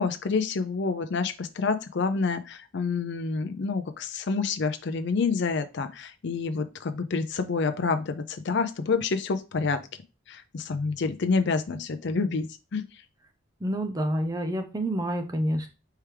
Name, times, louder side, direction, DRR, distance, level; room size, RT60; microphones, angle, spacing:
voice 1, 0.0-9.8 10.3-12.5 12.7-12.8, left 4 dB, 55° left, 8 dB, 0.5 m, -28 dB
voice 2, 13.6-15.7, equal, 15° right, 5 dB, 0.6 m, -28 dB
4.5 x 3.4 x 3.3 m, 0.30 s
head